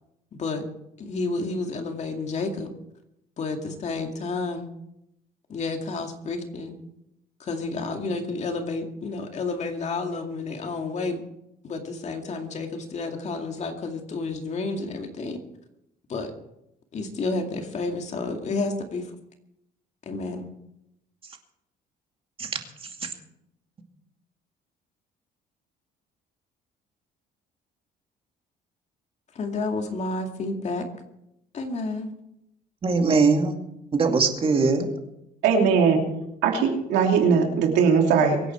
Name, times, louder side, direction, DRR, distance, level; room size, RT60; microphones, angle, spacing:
voice 1, 1.0-2.7 3.4-4.7 5.5-6.7 7.4-11.2 11.6-15.4 16.1-16.3 16.9-19.1 20.1-20.5 29.3-30.9 31.5-32.1, left 3 dB, 45° left, 4 dB, 2.3 m, -30 dB
voice 2, 32.8-33.5 33.9-34.9, right 4 dB, 35° right, 4 dB, 2.4 m, -21 dB
voice 3, 35.4-36.0 36.4-38.4, right 6 dB, 85° right, 2 dB, 3.0 m, -20 dB
23.5 x 9.0 x 4.6 m, 0.82 s
cardioid pair, 110°, 17 cm